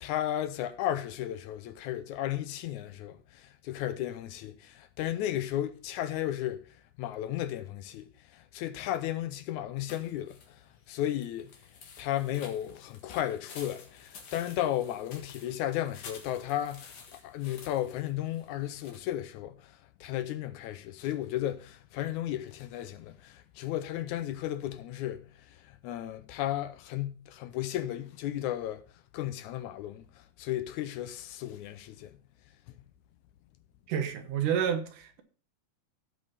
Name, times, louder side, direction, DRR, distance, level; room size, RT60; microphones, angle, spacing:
voice 1, 0.0-6.6 7.0-10.6 10.9-11.5 12.0-19.7 20.0-25.3 25.6-28.8 29.1-30.0 30.4-32.1, left 12 dB, 80° left, 2.0 m, -34 dB
sound 1, 9.9-19.0, left 5 dB, 60° left, 2.7 m, -51 dB
voice 2, 33.9-35.2, right 8 dB, 90° right, 2.8 m, -29 dB
16.0 x 5.4 x 4.1 m
omnidirectional pair, 3.6 m